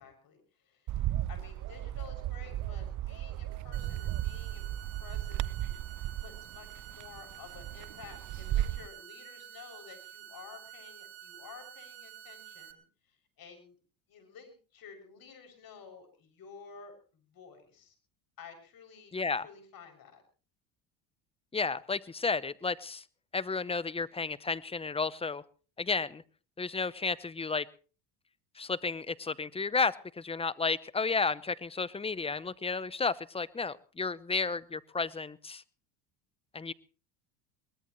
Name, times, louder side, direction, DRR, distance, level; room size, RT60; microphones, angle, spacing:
voice 1, 0.0-4.7 5.0-5.8 6.2-13.8 14.1-17.9 18.4-19.2 19.4-20.2, left 6 dB, 45° left, 4 dB, 7.1 m, -52 dB
Bird, 0.9-8.9, right 13 dB, 40° right, 0.7 m, -35 dB
sound 1, 3.7-12.7, right 11 dB, 65° right, 2.5 m, -50 dB
voice 2, 19.1-19.5 21.5-23.0 23.3-25.4 25.8-26.2 26.6-27.7 28.6-35.6 36.5-36.7, left 4 dB, 10° left, 18 dB, 0.8 m, -32 dB
22.5 x 20.5 x 3.2 m, 0.38 s
supercardioid pair, 95°, 46 cm